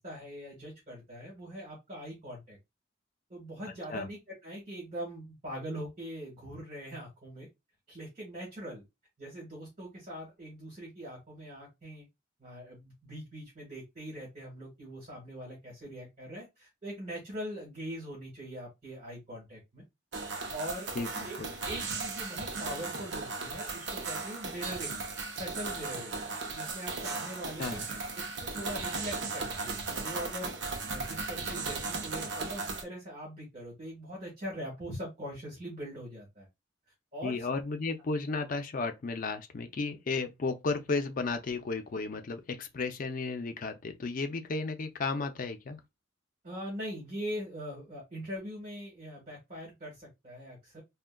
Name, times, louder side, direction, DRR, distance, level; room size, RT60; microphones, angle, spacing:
voice 1, 0.0-2.6 3.3-7.5 7.9-8.8 9.2-12.1 12.4-19.8 20.5-20.9 21.2-21.4 21.6-25.0 25.3-26.2 26.5-36.5 37.1-37.4 46.4-50.8, equal, 35° right, 1.4 m, -42 dB
sound 1, 20.1-32.8, right 3 dB, 70° right, 0.6 m, -36 dB
voice 2, 21.0-21.5 27.6-27.9 37.2-45.8, left 3 dB, 45° left, 0.5 m, -34 dB
3.6 x 2.1 x 2.2 m
head